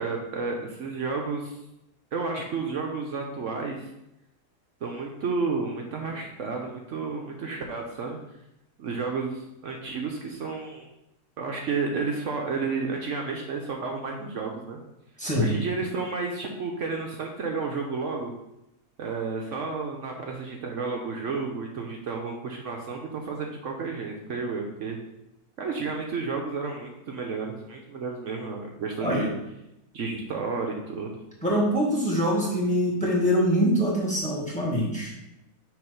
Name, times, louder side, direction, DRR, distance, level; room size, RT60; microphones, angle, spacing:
voice 1, 0.0-1.6 2.1-3.9 4.8-8.2 8.8-10.9 11.4-14.8 15.4-18.3 19.0-25.0 25.6-29.3 29.9-31.1, right 4 dB, 60° right, 1 dB, 0.9 m, -31 dB
voice 2, 15.2-15.5 29.0-29.3 31.4-35.1, equal, 5° left, -3 dB, 1.4 m, -24 dB
6.3 x 3.0 x 5.0 m, 0.88 s
omnidirectional pair, 1.7 m